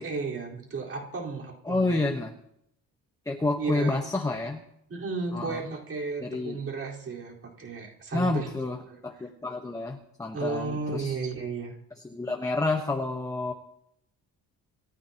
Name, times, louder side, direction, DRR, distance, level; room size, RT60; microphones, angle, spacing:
voice 1, 0.0-2.0 3.6-4.0 4.9-8.7 9.2-9.3 10.3-11.7, right 4 dB, 35° right, -2 dB, 4.3 m, -34 dB
voice 2, 1.6-2.3 3.3-4.6 5.3-5.6 6.2-6.6 8.1-8.8 9.0-11.2 12.0-13.5, left 2 dB, 10° left, 2 dB, 1.1 m, -29 dB
28.0 x 15.0 x 2.9 m, 0.75 s
cardioid pair, 170°, 37 cm